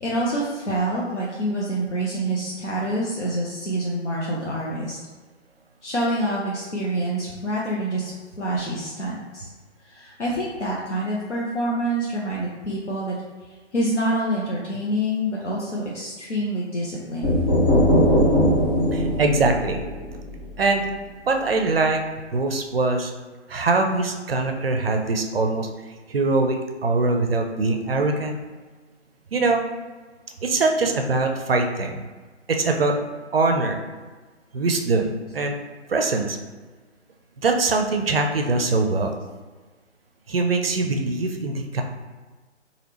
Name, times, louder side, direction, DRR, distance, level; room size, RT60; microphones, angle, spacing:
voice 1, 0.0-5.0 5.8-8.1 8.4-9.5 9.9-13.2 13.7-17.4, right 1 dB, 75° left, -5 dB, 0.7 m, -26 dB
sound 1, 17.2-21.0, equal, 20° left, 0.7 m, -20 dB
voice 2, 18.9-19.8 20.6-20.9 21.3-22.0 22.3-23.1 23.5-25.7 26.1-28.4 29.3-29.6 30.4-32.0 32.5-32.9 33.3-33.8 34.5-35.6 35.9-36.4 37.4-39.1 40.3-41.8, right 3 dB, 55° right, 3 dB, 0.5 m, -22 dB
3.3 x 2.4 x 3.0 m, 1.3 s
figure-of-eight pair, 140°, 35 cm